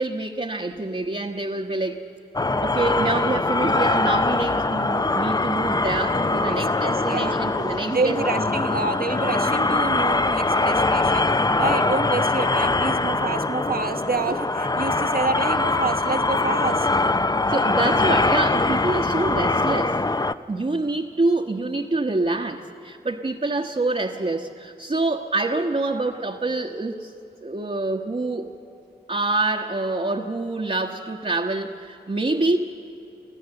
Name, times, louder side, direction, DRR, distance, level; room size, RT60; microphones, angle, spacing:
voice 1, 0.0-2.0 2.6-8.6 17.5-20.0 20.5-27.1 27.4-28.5 29.1-32.6, right 2 dB, 40° right, 0 dB, 1.2 m, -26 dB
sound 1, 2.4-20.3, left 2 dB, 25° left, 0.6 m, -22 dB
voice 2, 6.2-7.4 7.9-11.2 11.6-16.9, right 3 dB, 60° right, 7 dB, 1.2 m, -28 dB
24.5 x 15.0 x 7.8 m, 2.8 s
cardioid pair, 45°, 17 cm